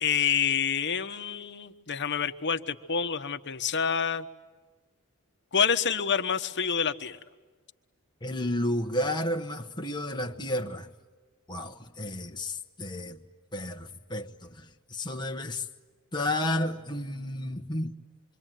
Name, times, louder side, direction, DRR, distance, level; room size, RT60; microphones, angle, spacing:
voice 1, 0.0-4.3 5.5-7.2, left 7 dB, 50° left, 1.2 m, -27 dB
voice 2, 8.2-10.9 11.5-13.2 13.5-15.7 16.1-17.9, left 1 dB, 20° left, 1.1 m, -32 dB
26.5 x 24.5 x 9.2 m
head